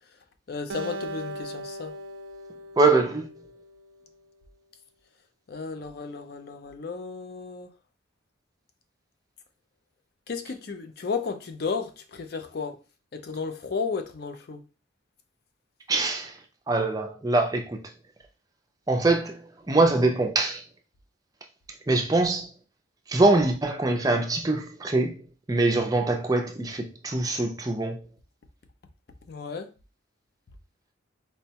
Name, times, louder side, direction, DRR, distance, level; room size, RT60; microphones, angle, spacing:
voice 1, 0.5-1.9 5.5-7.7 10.3-12.8 13.1-14.6 29.3-29.7, left 5 dB, 50° left, 0.4 m, -33 dB
Acoustic guitar, 0.7-4.0, right 1 dB, 80° right, 0.4 m, -38 dB
voice 2, 2.8-3.3 15.9-16.3 16.7-17.8 18.9-19.4 19.7-20.6 21.9-22.5 23.1-28.0, right 2 dB, 20° right, 0.4 m, -23 dB
4.4 x 2.1 x 2.8 m
head